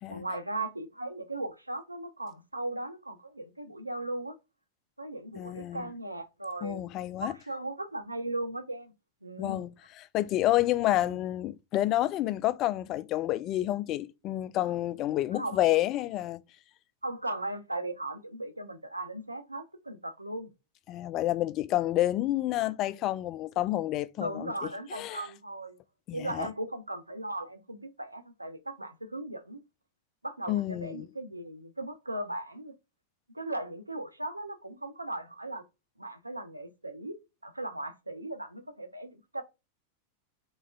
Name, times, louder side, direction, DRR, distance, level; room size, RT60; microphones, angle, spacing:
voice 1, 0.1-4.4 5.0-6.9 7.2-8.9 9.2-9.6 11.0-11.2 15.3-15.6 17.0-20.5 24.2-25.8 26.1-29.6 30.2-32.7 33.3-35.6 36.0-37.2 37.4-39.4, right 1 dB, 85° right, 0.6 m, -37 dB
voice 2, 5.4-5.9 6.6-7.3 9.4-9.7 10.0-16.4 20.9-24.5 24.9-25.2 26.1-26.5 30.5-31.1, left 14 dB, 35° left, 0.3 m, -29 dB
4.0 x 3.6 x 2.3 m
figure-of-eight pair, 90°, 0 cm